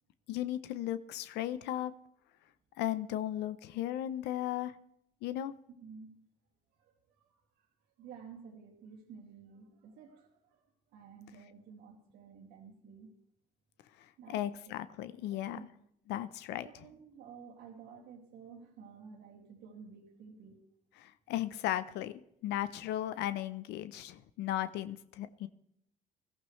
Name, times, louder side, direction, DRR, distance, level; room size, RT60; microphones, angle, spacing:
voice 1, 0.3-1.9 2.8-4.7 5.2-5.5 14.3-15.6 16.1-16.7 21.0-22.1 22.4-25.5, left 12 dB, 85° left, 13 dB, 0.7 m, -36 dB
voice 2, 5.8-6.2 6.8-7.7 8.0-10.7 10.9-13.1 14.2-14.4 15.3-15.7 16.6-20.6, right 6 dB, 85° right, -3 dB, 2.5 m, -52 dB
21.0 x 14.0 x 3.2 m, 0.73 s
cardioid pair, 110°, 17 cm